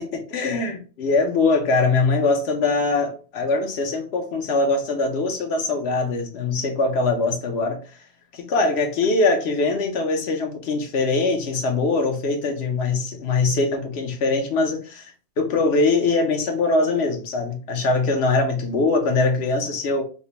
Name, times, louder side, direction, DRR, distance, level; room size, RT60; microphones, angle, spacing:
voice 1, 0.3-7.8 8.3-15.1 15.4-20.0, left 3 dB, 70° left, 3 dB, 0.9 m, -22 dB
3.2 x 2.1 x 2.8 m, 0.37 s
omnidirectional pair, 1.1 m